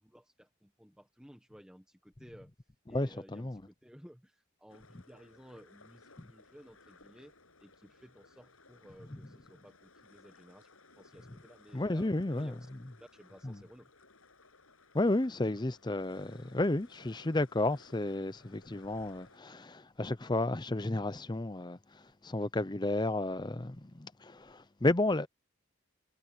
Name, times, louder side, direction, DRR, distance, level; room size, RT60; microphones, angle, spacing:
voice 1, 0.0-2.5 2.9-7.3 7.6-10.7 11.0-12.7 13.0-13.9, equal, 5° right, 1.5 m, -56 dB
voice 2, 2.9-3.6 11.7-12.5 13.4-13.6 14.9-21.8 22.2-25.3, left 2 dB, 20° left, 0.6 m, -32 dB
sound 1, 4.7-19.4, left 3 dB, 85° left, 7.6 m, -61 dB
head